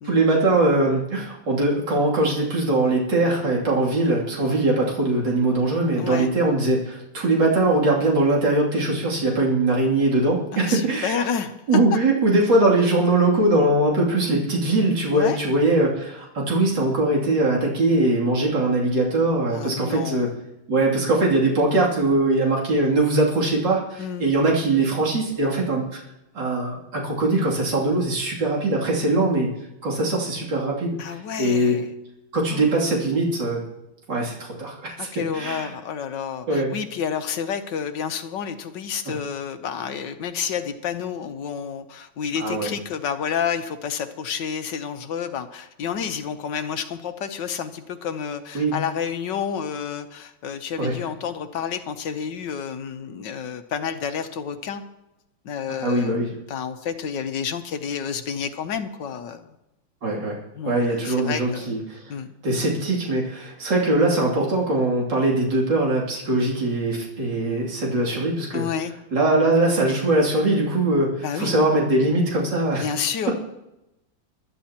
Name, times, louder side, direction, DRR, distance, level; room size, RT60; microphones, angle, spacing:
voice 1, 0.0-11.2 11.7-20.3 20.7-26.0 26.3-29.5 29.8-31.8 32.3-33.6 34.1-35.1 35.3-35.7 36.5-36.7 39.1-39.2 42.4-42.7 48.5-48.7 50.8-51.0 55.8-56.3 60.0-60.4 60.7-62.1 62.4-68.6 69.1-72.9, right 2 dB, 70° right, -4 dB, 3.5 m, -21 dB
voice 2, 6.0-6.3 10.5-11.6 15.1-15.4 19.5-20.4 24.0-24.3 31.0-31.8 32.5-32.8 35.0-54.8 55.4-59.5 60.5-61.8 62.1-62.3 68.5-68.9 71.2-71.5 72.8-73.3, left 7 dB, 70° left, 9 dB, 1.5 m, -30 dB
22.5 x 12.5 x 2.9 m, 0.90 s
omnidirectional pair, 2.0 m